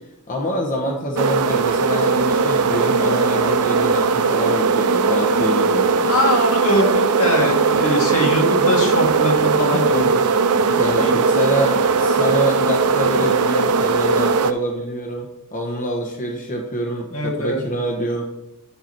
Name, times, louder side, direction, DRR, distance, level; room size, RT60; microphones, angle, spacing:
voice 1, 0.3-6.1 9.8-9.9 10.7-18.2, equal, 35° left, 1 dB, 1.2 m, -26 dB
sound 1, 1.2-14.5, right 4 dB, 85° right, 0.6 m, -18 dB
voice 2, 6.1-10.0 10.7-11.2 17.1-17.6, left 1 dB, 70° left, -1 dB, 2.5 m, -22 dB
10.0 x 5.9 x 4.6 m, 0.86 s
head